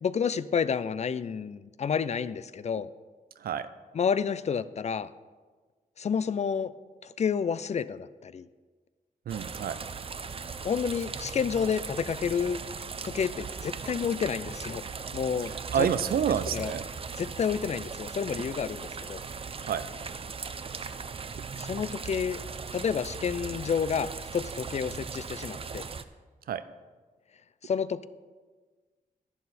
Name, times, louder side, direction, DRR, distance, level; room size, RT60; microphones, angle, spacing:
voice 1, 0.0-2.9 3.9-5.1 6.0-6.7 7.0-8.5 10.6-12.6 13.0-14.8 15.1-15.5 15.8-15.9 16.5-16.7 17.2-19.2 21.6-22.4 22.7-25.9 27.6-28.1, left 6 dB, 50° left, 16 dB, 0.4 m, -30 dB
sound 1, 9.3-26.0, right 5 dB, 40° right, 0.5 m, -38 dB
voice 2, 9.3-9.8 15.4-16.8 19.6-19.9 26.5-26.6, right 8 dB, 90° right, 13 dB, 0.5 m, -29 dB
11.0 x 10.5 x 4.2 m, 1.4 s
wide cardioid pair, 100°, 15 cm